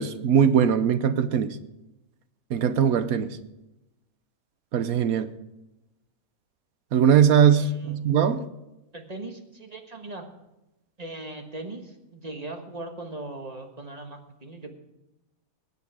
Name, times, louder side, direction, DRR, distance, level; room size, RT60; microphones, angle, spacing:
voice 1, 0.0-1.6 2.5-3.4 4.7-5.3 6.9-8.4, right 8 dB, 80° right, 1.2 m, -21 dB
voice 2, 7.5-8.0 8.9-10.3 11.0-14.7, right 2 dB, 30° right, 1.5 m, -39 dB
19.5 x 8.2 x 4.8 m
omnidirectional pair, 1.5 m